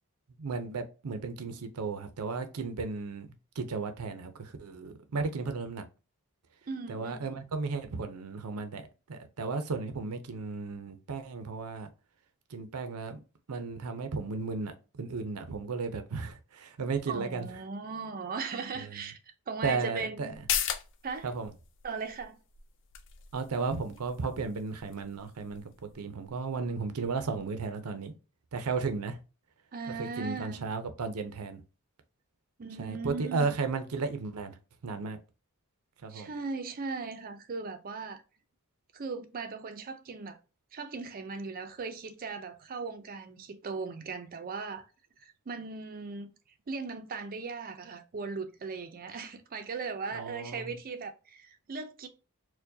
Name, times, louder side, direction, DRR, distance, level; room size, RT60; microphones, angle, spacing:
voice 1, 0.4-3.3 3.5-5.8 6.9-11.9 12.5-13.2 13.5-17.5 18.7-19.0 19.6-20.3 21.2-21.5 23.3-28.1 28.5-29.2 29.9-31.6 32.8-35.2 36.0-36.3 50.1-50.8, right 4 dB, 85° right, 0.6 m, -34 dB
voice 2, 6.7-7.3 17.1-19.2 19.5-20.3 21.0-21.3 21.8-22.4 29.7-30.7 32.6-33.5 36.1-38.2 38.9-40.4 40.7-44.9 45.2-46.3 46.7-52.1, right 4 dB, 40° right, 0.4 m, -38 dB
sound 1, 20.3-27.4 27.8-27.9, left 9 dB, 55° left, 0.5 m, -39 dB
4.5 x 2.2 x 2.6 m
head